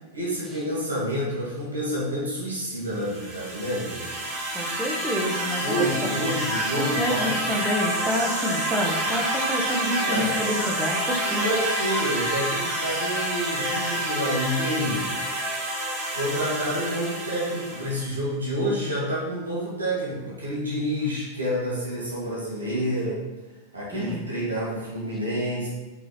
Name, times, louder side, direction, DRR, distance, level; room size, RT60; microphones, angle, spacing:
voice 1, 0.1-4.1 5.6-7.3 10.0-10.3 11.4-15.1 16.1-23.2 23.7-25.7, equal, 75° right, -6 dB, 2.0 m, -28 dB
sound 1, 3.0-18.0, right 1 dB, 35° right, 2.1 m, -28 dB
voice 2, 4.5-6.2 7.0-11.4 23.9-24.2, equal, 10° right, -1 dB, 1.2 m, -28 dB
6.0 x 4.3 x 4.1 m, 1.1 s
figure-of-eight pair, 90°, 0 cm